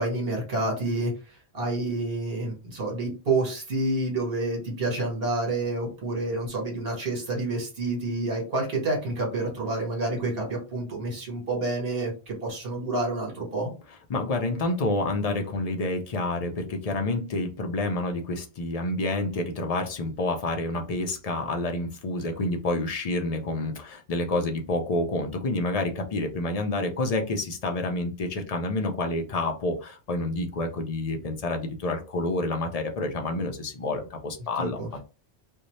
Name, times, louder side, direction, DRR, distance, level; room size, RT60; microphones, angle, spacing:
voice 1, 0.0-13.7 34.6-34.9, right 2 dB, 65° right, -1 dB, 1.3 m, -29 dB
voice 2, 14.1-35.0, left 2 dB, 50° left, 4 dB, 0.4 m, -28 dB
2.6 x 2.2 x 3.0 m, 0.32 s
omnidirectional pair, 1.1 m